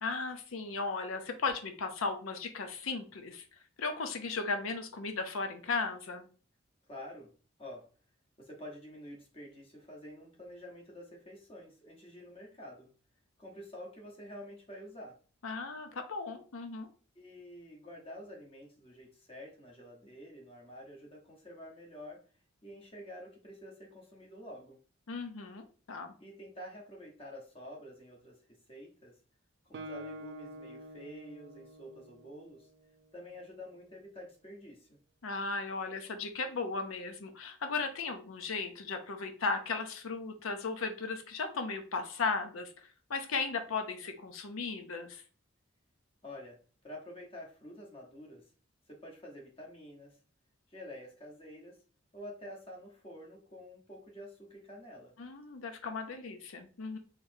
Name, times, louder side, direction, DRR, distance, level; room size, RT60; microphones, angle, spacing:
voice 1, 0.0-3.4 3.8-6.3 15.4-16.9 25.1-26.1 35.2-42.7 43.1-45.2 55.2-57.0, left 4 dB, 80° left, 6 dB, 0.6 m, -36 dB
voice 2, 6.9-7.3 7.6-7.8 8.4-12.9 13.4-15.2 17.1-22.2 22.6-24.8 26.2-29.2 29.7-32.7 33.1-35.0 46.2-46.6 46.8-48.5 48.9-50.2 50.7-51.8 52.1-55.1, equal, 25° left, -1 dB, 1.0 m, -48 dB
Guitar, 29.7-33.4, right 1 dB, 50° right, 0.3 m, -48 dB
4.0 x 3.1 x 2.6 m, 0.40 s
head